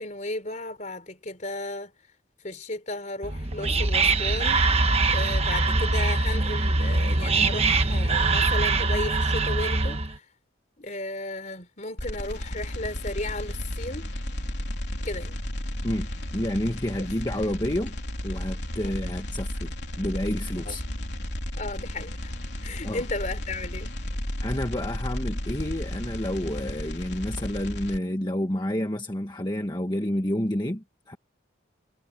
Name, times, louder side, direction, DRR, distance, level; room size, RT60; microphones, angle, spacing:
voice 1, 0.0-1.9 2.4-4.8 5.1-10.2 10.8-14.1 15.0-15.4 17.0-17.1 18.8-19.0 20.7-20.8 21.6-22.3 22.6-23.9, left 2 dB, 40° left, 4.2 m, -34 dB
Whispering, 3.2-10.2, right 3 dB, 30° right, 1.2 m, -23 dB
sound 1, 12.0-28.0, left 1 dB, 60° left, 3.9 m, -33 dB
voice 2, 15.8-17.9 18.2-20.8 22.8-23.0 24.4-31.2, left 1 dB, 20° left, 1.6 m, -29 dB
head